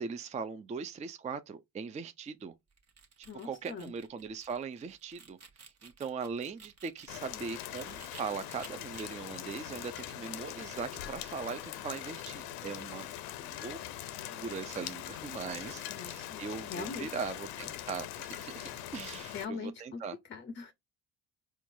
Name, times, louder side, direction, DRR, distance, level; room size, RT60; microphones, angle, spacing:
voice 1, 0.0-2.5 3.2-13.1 13.4-13.8 14.3-20.2, right 5 dB, 20° right, 0.4 m, -40 dB
sound 1, 2.7-8.2 8.6-9.0, right 5 dB, 40° right, 1.0 m, -54 dB
voice 2, 3.3-3.9 15.9-17.1 19.3-20.0 20.3-20.7, left 5 dB, 30° left, 0.5 m, -42 dB
Rain, 7.1-19.4, left 12 dB, 75° left, 0.6 m, -42 dB
4.4 x 2.3 x 2.6 m
supercardioid pair, 70°, 38 cm